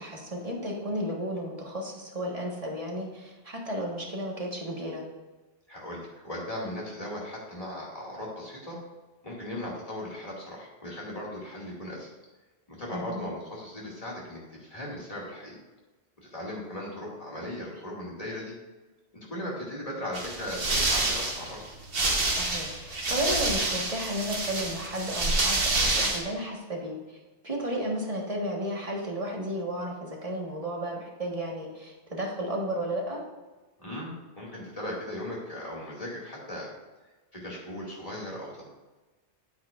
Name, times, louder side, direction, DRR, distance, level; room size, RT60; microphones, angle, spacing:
voice 1, 0.0-5.0 12.9-13.2 22.4-27.2 27.4-33.2, equal, 30° right, -2 dB, 1.6 m, -33 dB
voice 2, 5.7-8.8 9.2-12.1 12.7-15.6 16.3-18.5 19.1-21.6 33.8-36.7 37.3-38.7, left 1 dB, 30° left, -5 dB, 2.4 m, -38 dB
sound 1, 20.1-26.2, right 2 dB, 55° right, 1.4 m, -28 dB
8.7 x 8.4 x 2.5 m, 1.2 s
omnidirectional pair, 1.1 m